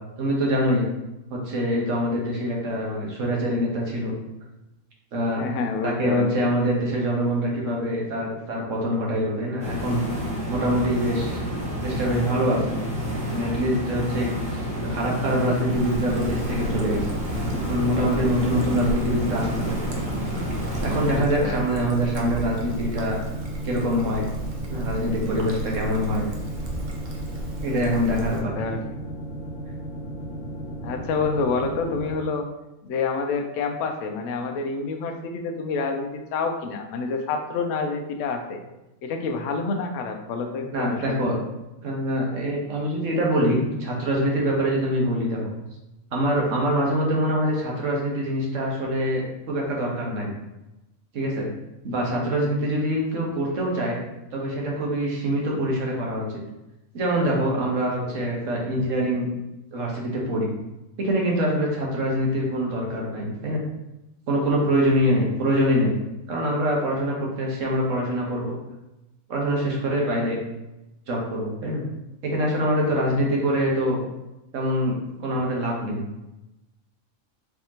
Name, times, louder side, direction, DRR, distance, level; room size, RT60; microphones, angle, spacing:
voice 1, 0.2-0.9 1.3-4.1 5.1-5.5 5.8-10.0 10.5-11.4 11.8-12.8 13.3-17.1 17.3-19.8 20.8-23.2 23.6-24.3 24.7-26.2 27.6-28.5 40.7-41.4 41.8-45.4 46.1-50.3 51.1-51.5 51.8-54.0 54.3-56.2 56.9-59.3 59.7-60.5 61.0-63.6 64.3-66.0 66.3-68.5 69.3-70.4 71.1-71.8 72.2-74.0 74.5-75.0 75.2-76.0, equal, 65° right, -2 dB, 1.3 m, -24 dB
voice 2, 5.4-6.3 21.1-21.6 28.3-28.8 30.8-32.5 32.8-38.6 39.0-41.2 57.8-58.3, left 4 dB, 65° left, 5 dB, 0.9 m, -28 dB
sound 1, 9.6-21.2, equal, 5° right, 1.0 m, -29 dB
Trickle dribble, 15.7-28.4, right 1 dB, 45° right, 0.6 m, -35 dB
sound 2, 16.1-32.2, right 1 dB, 15° left, 1.1 m, -35 dB
4.6 x 3.5 x 2.8 m, 0.97 s
omnidirectional pair, 1.5 m